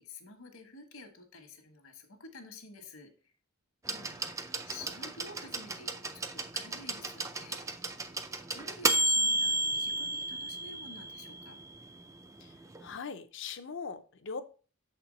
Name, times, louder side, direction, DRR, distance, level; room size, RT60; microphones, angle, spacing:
voice 1, 0.0-3.3 3.8-7.7 8.5-11.6, left 3 dB, 70° left, 5 dB, 1.2 m, -50 dB
sound 1, 3.9-11.6 12.8-12.9, right 2 dB, 15° right, 0.3 m, -32 dB
voice 2, 12.8-14.4, left 5 dB, 55° left, 11 dB, 0.6 m, -40 dB
6.9 x 4.3 x 3.9 m, 0.38 s
head